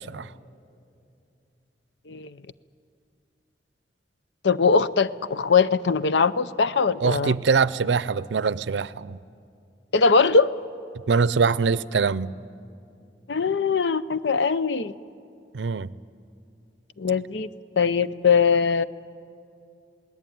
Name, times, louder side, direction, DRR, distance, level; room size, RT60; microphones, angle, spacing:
voice 1, 4.4-7.3 9.9-10.5 13.3-14.9 17.0-17.5 17.8-18.8, left 5 dB, 85° left, 15 dB, 0.6 m, -21 dB
voice 2, 7.0-9.2 11.1-12.3 15.5-15.9, right 5 dB, 90° right, 18 dB, 0.5 m, -23 dB
20.5 x 18.5 x 9.4 m, 2.6 s
head